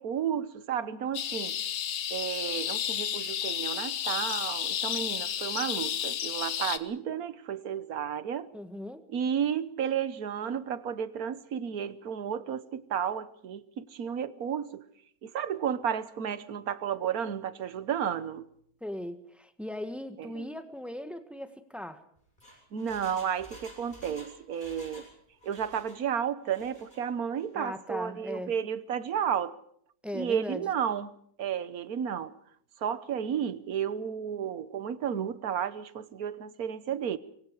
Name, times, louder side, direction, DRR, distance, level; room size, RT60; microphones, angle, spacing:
voice 1, 0.0-1.6 2.1-8.5 9.1-14.8 15.2-18.5 20.2-20.5 22.7-25.1 25.4-29.6 30.1-31.1 31.4-32.3 32.8-37.2, right 8 dB, 55° right, 1.4 m, -32 dB
sound 1, 1.1-6.8, left 10 dB, 85° left, 1.9 m, -32 dB
voice 2, 8.5-9.1 18.8-22.0 27.5-28.5 30.0-30.7, left 1 dB, ahead, 1.4 m, -38 dB
Engine, 22.2-25.1 25.4-26.0 26.4-27.0 27.4-27.5, equal, 25° left, 8.4 m, -51 dB
26.0 x 22.5 x 4.8 m
omnidirectional pair, 2.1 m